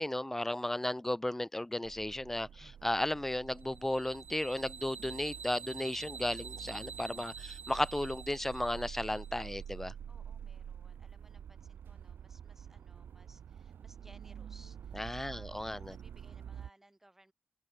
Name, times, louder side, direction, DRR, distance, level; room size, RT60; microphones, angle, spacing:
voice 1, 0.0-9.9 15.0-15.9, left 1 dB, 10° left, 0.3 m, -34 dB
sound 1, 1.8-16.7, right 8 dB, 70° right, 0.7 m, -48 dB
sound 2, 3.6-9.6, right 6 dB, 50° right, 1.7 m, -48 dB
voice 2, 10.1-15.0 15.2-17.3, right 1 dB, 10° right, 5.8 m, -63 dB
open air
wide cardioid pair, 150°, 4 cm